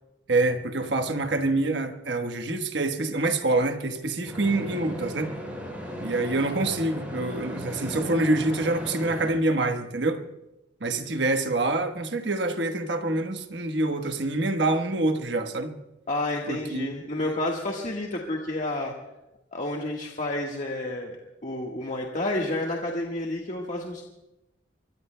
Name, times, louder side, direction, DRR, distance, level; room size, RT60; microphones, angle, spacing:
voice 1, 0.3-5.3 6.0-10.2 10.8-15.8 16.5-17.4, right 2 dB, 70° right, 1.3 m, -26 dB
sound 1, 4.2-9.3, equal, 10° right, 6.5 m, -36 dB
voice 2, 16.1-18.9 19.5-21.2 21.4-24.1, left 1 dB, 40° left, 1.5 m, -30 dB
25.0 x 23.0 x 2.2 m
head